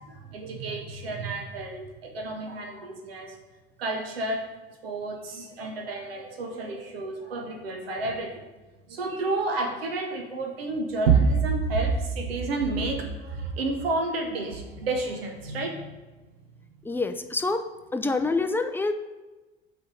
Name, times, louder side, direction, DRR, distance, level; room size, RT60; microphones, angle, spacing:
voice 1, 0.0-3.3 3.8-4.5 4.8-8.4 8.9-15.9, right 3 dB, 75° right, 4 dB, 0.9 m, -29 dB
voice 2, 16.8-17.6 17.9-18.9, left 3 dB, 5° left, 8 dB, 0.5 m, -26 dB
7.8 x 3.4 x 6.1 m, 1.2 s
figure-of-eight pair, 60°, 30 cm